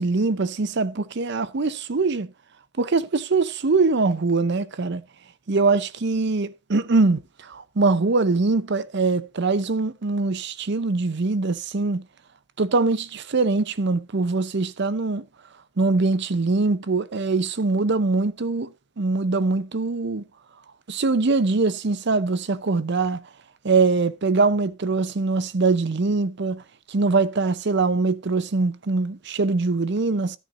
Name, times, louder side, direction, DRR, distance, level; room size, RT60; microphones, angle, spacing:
voice 1, 0.0-2.3 2.8-5.0 5.5-12.0 12.6-15.2 15.8-18.7 19.0-20.2 20.9-23.2 23.6-26.6 26.9-30.4, right 3 dB, 60° right, 0.7 m, -22 dB
13.5 x 9.3 x 2.6 m
head